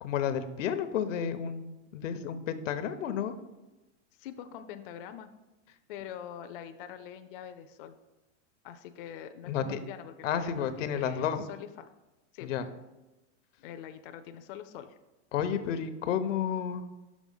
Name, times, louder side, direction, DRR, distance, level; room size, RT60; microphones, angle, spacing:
voice 1, 0.0-3.4 9.4-9.8 10.2-11.5 12.4-12.7 15.3-16.8, left 8 dB, 85° left, 10 dB, 0.8 m, -31 dB
voice 2, 4.2-5.3 5.9-7.9 8.6-11.9 12.3-12.5 13.6-15.0, left 9 dB, 50° left, 8 dB, 0.5 m, -44 dB
6.2 x 4.9 x 5.4 m, 1.1 s
supercardioid pair, 160°, 37 cm